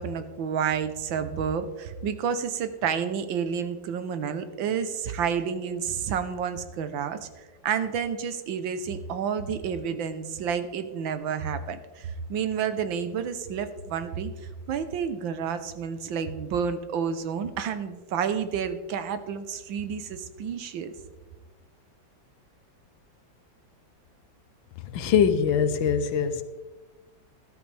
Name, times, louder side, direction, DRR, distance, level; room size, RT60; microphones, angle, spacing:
voice 1, 0.0-20.9, right 7 dB, 85° right, 1.6 m, -30 dB
voice 2, 24.8-26.4, left 7 dB, 90° left, 1.6 m, -23 dB
13.5 x 12.5 x 3.4 m
omnidirectional pair, 2.1 m